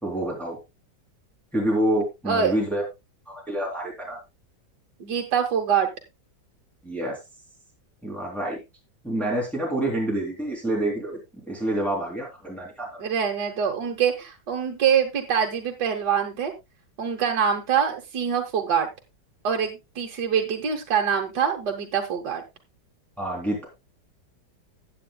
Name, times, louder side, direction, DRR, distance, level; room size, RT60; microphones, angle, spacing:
voice 1, 0.0-0.6 1.5-2.8 3.5-4.2 6.8-7.2 8.0-8.6 9.0-11.2 11.5-12.9 23.2-23.6, right 1 dB, ahead, -2 dB, 3.4 m, -27 dB
voice 2, 2.3-2.6 5.0-5.9 13.0-16.5 17.0-18.9 19.4-22.4, right 7 dB, 65° right, 2 dB, 1.8 m, -24 dB
15.5 x 8.7 x 2.3 m, 0.23 s
omnidirectional pair, 2.0 m